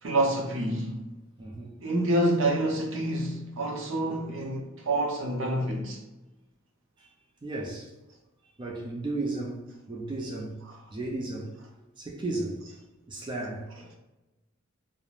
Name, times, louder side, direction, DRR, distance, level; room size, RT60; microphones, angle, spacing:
voice 1, 0.0-1.1 1.8-6.0 10.7-10.8, right 1 dB, 70° right, 0.6 m, -27 dB
voice 2, 1.4-1.7 7.0-7.1 7.4-7.9 8.6-10.6 10.9-11.5 12.0-12.6 13.0-13.7, right 2 dB, 25° right, 0.3 m, -34 dB
2.4 x 2.0 x 3.1 m
head